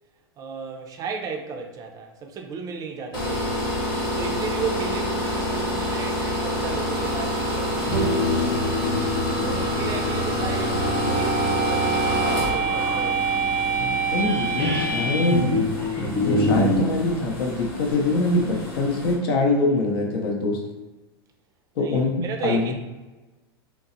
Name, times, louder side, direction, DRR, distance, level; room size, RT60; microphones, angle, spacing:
voice 1, 0.4-8.1 9.3-13.3 21.8-22.7, right 5 dB, 30° right, 3 dB, 0.4 m, -34 dB
sound 1, 3.1-19.1, equal, 45° left, 0.9 m, -28 dB
sound 2, 7.7-16.9, right 1 dB, 15° left, 0.9 m, -25 dB
voice 2, 13.8-15.5 16.3-20.6 21.8-22.7, left 2 dB, 70° left, 1 dB, 0.6 m, -24 dB
2.6 x 2.0 x 2.5 m, 1.1 s
hypercardioid pair, 105°, 13 cm